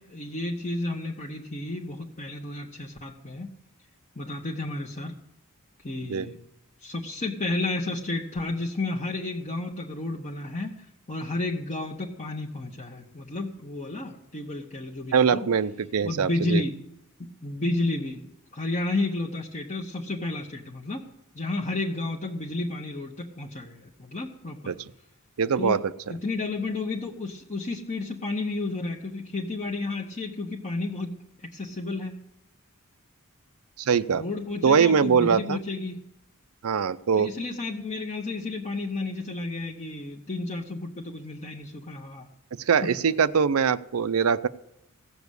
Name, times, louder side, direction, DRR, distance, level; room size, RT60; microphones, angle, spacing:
voice 1, 0.0-3.5 4.1-5.2 5.8-6.4 6.8-15.5 16.0-16.7 17.2-21.1 21.3-24.8 25.6-25.8 26.1-32.1 34.1-36.0 37.1-42.3 42.8-42.9, left 2 dB, 35° left, -1 dB, 1.2 m, -32 dB
voice 2, 15.1-16.6 24.7-24.8 25.4-25.8 33.8-34.2 34.6-35.6 36.6-37.3 42.7-44.5, right 6 dB, 70° right, 14 dB, 0.5 m, -22 dB
16.5 x 7.0 x 8.1 m, 0.83 s
head